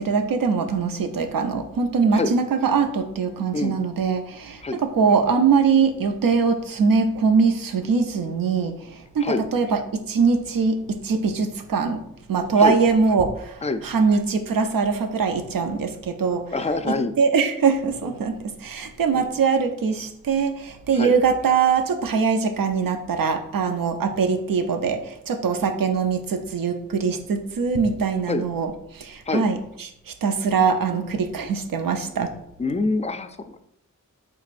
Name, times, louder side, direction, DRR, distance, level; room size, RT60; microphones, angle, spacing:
voice 1, 0.0-12.0 12.3-16.5 16.8-32.3, right 5 dB, 85° right, 7 dB, 0.5 m, -22 dB
voice 2, 16.5-17.1 19.1-19.2 21.0-21.1 28.3-28.5 29.3-29.5 32.6-33.6, left 3 dB, 20° left, 9 dB, 0.3 m, -25 dB
4.8 x 3.5 x 2.5 m, 0.76 s
cardioid pair, 45°, 33 cm